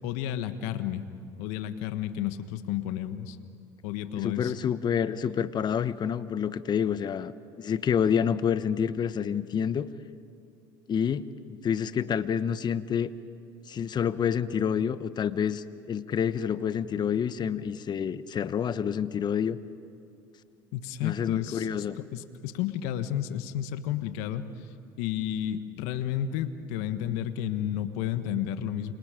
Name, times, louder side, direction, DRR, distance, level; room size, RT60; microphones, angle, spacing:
voice 1, 0.0-1.0 1.4-3.4 3.8-4.5 20.7-21.7 22.0-24.5 25.0-28.9, left 11 dB, 75° left, 11 dB, 1.4 m, -31 dB
voice 2, 4.2-7.3 7.6-9.9 10.9-11.2 11.6-13.1 13.7-19.6 21.0-22.0, left 8 dB, 40° left, 14 dB, 1.1 m, -28 dB
29.0 x 26.5 x 5.1 m, 2.7 s
hypercardioid pair, 80°, 11 cm